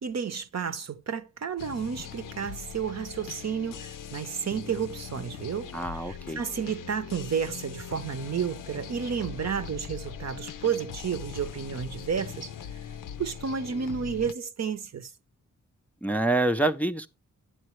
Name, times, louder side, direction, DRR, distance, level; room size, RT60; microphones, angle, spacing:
voice 1, 0.0-12.8 13.2-15.1, right 7 dB, 55° right, 0.8 m, -31 dB
sound 1, 1.6-14.3, left 9 dB, 80° left, 0.6 m, -41 dB
voice 2, 5.7-6.4 16.0-17.1, right 2 dB, 5° left, 0.5 m, -26 dB
11.0 x 7.7 x 3.1 m
cardioid pair, 65°, 32 cm